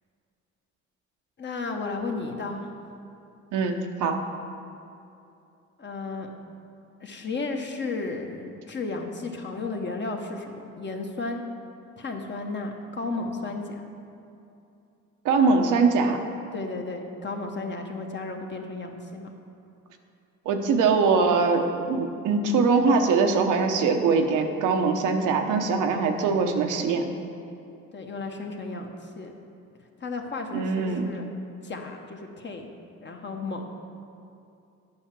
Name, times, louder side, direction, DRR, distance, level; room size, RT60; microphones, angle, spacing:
voice 1, 1.4-2.7 5.8-6.3 7.0-11.4 12.0-13.8 16.5-19.3 27.9-29.3 30.0-31.2 31.6-32.7 33.0-33.6, left 3 dB, 35° left, 3 dB, 1.1 m, -33 dB
voice 2, 3.5-4.2 15.2-16.2 20.4-27.0 30.5-31.1, right 4 dB, 85° right, 4 dB, 0.9 m, -22 dB
9.7 x 5.6 x 6.0 m, 2.7 s
cardioid pair, 90°, 30 cm